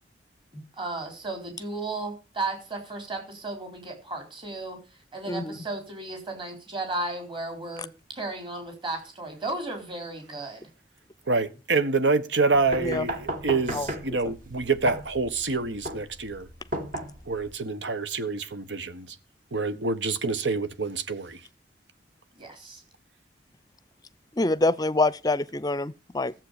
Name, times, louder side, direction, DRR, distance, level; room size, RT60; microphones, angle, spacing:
voice 1, 0.5-4.8 5.1-7.9 8.1-10.7 22.4-22.8, right 2 dB, 30° right, 4.3 m, -34 dB
voice 2, 5.3-5.6 12.8-13.1 13.7-14.3 24.3-26.3, left 2 dB, 20° left, 0.6 m, -26 dB
voice 3, 11.3-16.5 17.3-19.1 19.5-21.4, right 3 dB, 85° right, 1.3 m, -27 dB
sound 1, 12.5-17.5, right 1 dB, 50° right, 2.4 m, -34 dB
14.5 x 7.6 x 6.8 m
head